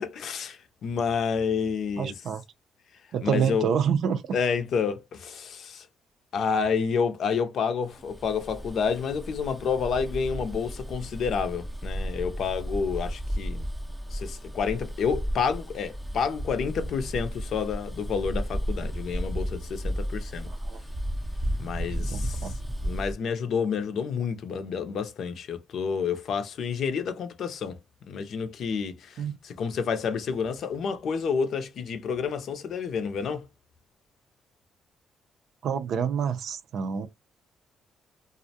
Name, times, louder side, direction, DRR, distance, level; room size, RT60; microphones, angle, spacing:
voice 1, 0.0-2.1 3.2-3.7 4.3-5.9 6.3-13.7 14.1-20.5 21.6-22.5 22.8-27.7 28.1-33.4, left 6 dB, 65° left, 0.5 m, -29 dB
voice 2, 2.0-2.4 3.1-4.2 20.7-20.8 22.0-22.6 29.2-29.4 35.6-37.1, right 7 dB, 70° right, 0.4 m, -27 dB
Bus, 8.0-23.1, equal, 10° right, 0.5 m, -33 dB
2.4 x 2.0 x 2.7 m
cardioid pair, 90°, 0 cm